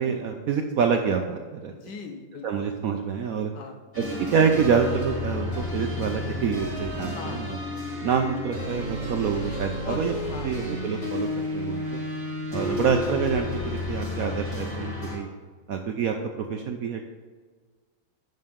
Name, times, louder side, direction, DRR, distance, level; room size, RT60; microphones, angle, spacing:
voice 1, 0.0-1.7 2.4-3.5 4.0-7.6 8.0-10.1 10.4-12.0 12.5-15.3 15.7-17.1, right 6 dB, 70° right, 4 dB, 0.8 m, -26 dB
voice 2, 1.7-2.7 3.5-3.8 7.1-7.5 9.8-10.6 12.6-12.9, left 4 dB, 70° left, 5 dB, 1.5 m, -39 dB
sound 1, 3.9-15.2, left 2 dB, 20° left, 2.7 m, -32 dB
9.5 x 6.4 x 3.6 m, 1.4 s
omnidirectional pair, 2.0 m